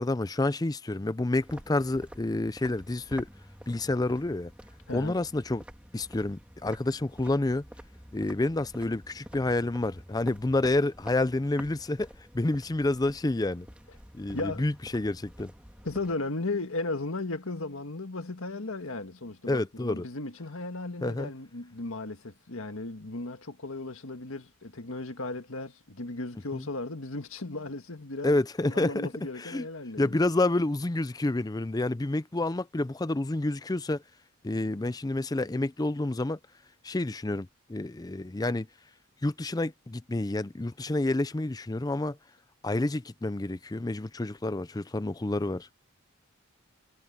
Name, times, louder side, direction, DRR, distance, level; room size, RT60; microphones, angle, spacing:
voice 1, 0.0-3.3 3.7-4.5 4.9-5.6 5.9-7.6 8.1-12.1 12.3-13.7 14.1-15.5 19.5-20.0 21.0-21.3 26.5-26.7 28.2-29.1 29.4-29.7 30.0-34.0 34.4-36.4 36.8-38.7 39.2-42.2 42.6-45.7, left 2 dB, 20° left, 0.5 m, -29 dB
sound 1, 1.4-16.1, equal, 5° right, 1.7 m, -49 dB
voice 2, 14.3-14.6 15.8-30.2, left 2 dB, 70° left, 1.8 m, -36 dB
head